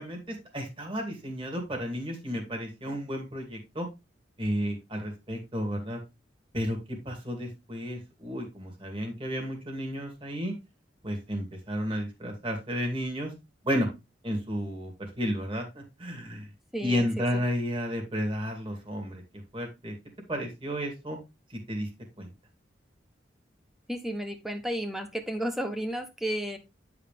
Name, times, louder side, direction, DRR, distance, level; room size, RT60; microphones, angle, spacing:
voice 1, 0.0-3.9 4.4-6.0 6.5-6.8 7.0-10.5 11.0-13.3 13.6-13.9 14.2-16.5 16.8-19.2 19.5-19.9 20.3-21.2 21.7-21.9 22.2-22.3, equal, 30° right, 1 dB, 2.4 m, -32 dB
voice 2, 16.7-17.4 23.9-26.6, equal, ahead, 6 dB, 1.1 m, -33 dB
9.8 x 4.9 x 3.5 m, 0.24 s
head